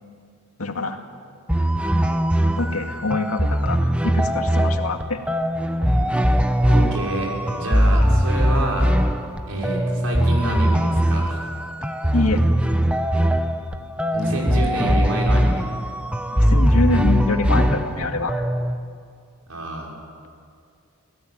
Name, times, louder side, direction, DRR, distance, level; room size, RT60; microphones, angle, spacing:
voice 1, 0.6-1.0 2.6-5.2 12.1-12.4 16.3-18.4, left 2 dB, 80° left, 4 dB, 2.1 m, -24 dB
sound 1, 1.5-18.8, equal, 5° right, 0.9 m, -20 dB
voice 2, 6.6-9.0 9.5-11.4 13.9-15.7 19.5-19.9, right 1 dB, 75° right, -1 dB, 6.0 m, -28 dB
27.0 x 17.0 x 9.4 m, 2.3 s
head